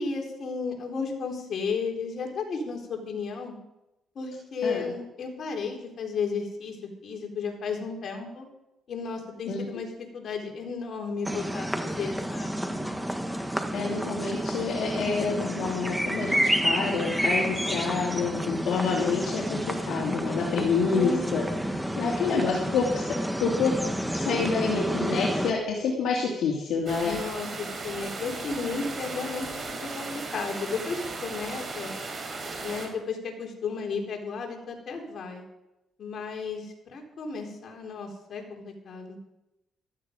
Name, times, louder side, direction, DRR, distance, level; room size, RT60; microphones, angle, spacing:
voice 1, 0.0-3.5 4.2-6.8 7.0-8.5 8.9-9.9 10.1-12.7 20.9-21.5 27.0-31.9 32.5-35.4 36.0-39.2, left 4 dB, 55° left, 1 dB, 3.8 m, -33 dB
sound 1, 11.2-25.5, equal, 5° right, 1.6 m, -30 dB
voice 2, 13.4-21.4 22.0-23.7 24.1-27.2, left 5 dB, 70° left, -3 dB, 2.9 m, -28 dB
sound 2, 26.9-32.9, right 3 dB, 40° right, 4.6 m, -36 dB
15.0 x 13.0 x 5.3 m, 0.92 s
cardioid pair, 90°, 0 cm